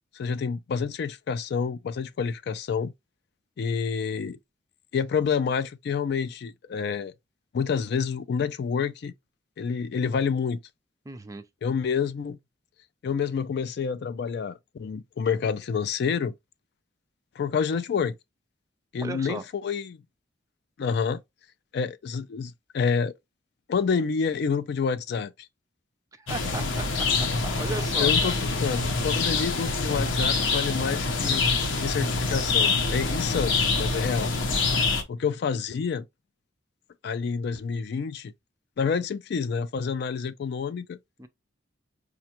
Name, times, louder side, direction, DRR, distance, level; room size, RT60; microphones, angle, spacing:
voice 1, 0.1-2.9 3.6-4.4 4.9-7.1 7.5-9.1 9.6-10.6 11.6-12.4 13.0-16.3 17.4-18.2 18.9-20.0 20.8-21.2 21.7-23.1 23.7-25.3 28.0-31.5 31.8-34.3 35.1-36.0 37.0-38.3 38.8-41.0, left 6 dB, 60° left, 0.3 m, -28 dB
voice 2, 11.1-11.4 19.0-19.4 26.2-28.3 41.2-41.3, right 3 dB, 15° right, 0.4 m, -37 dB
sound 1, 26.3-35.0, left 4 dB, 80° left, 0.8 m, -25 dB
4.9 x 2.2 x 2.8 m
head